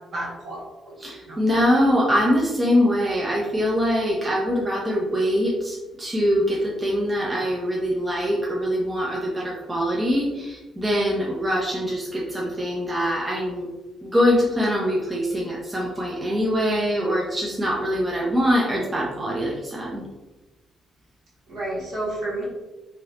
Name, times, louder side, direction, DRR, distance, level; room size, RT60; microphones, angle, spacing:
voice 1, 0.1-0.6 0.8-1.4 21.5-22.4, right 2 dB, 60° right, -5 dB, 1.3 m, -31 dB
voice 2, 1.0-13.7 14.0-20.0, equal, 25° right, -3 dB, 0.8 m, -23 dB
3.0 x 2.8 x 3.0 m, 1.1 s
hypercardioid pair, 40°, 0 cm